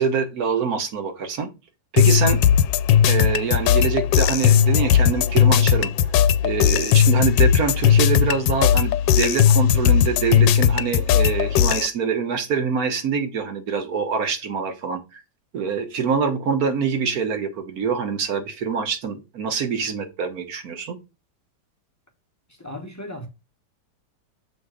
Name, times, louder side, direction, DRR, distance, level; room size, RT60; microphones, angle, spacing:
voice 1, 0.0-1.5 1.9-2.4 3.0-5.9 6.4-15.2 15.5-21.0, right 6 dB, 55° right, 1.7 m, -25 dB
sound 1, 2.0-11.9, left 9 dB, 85° left, 1.3 m, -17 dB
voice 2, 22.5-23.3, left 1 dB, 10° left, 1.0 m, -36 dB
7.1 x 3.6 x 4.9 m
omnidirectional pair, 1.9 m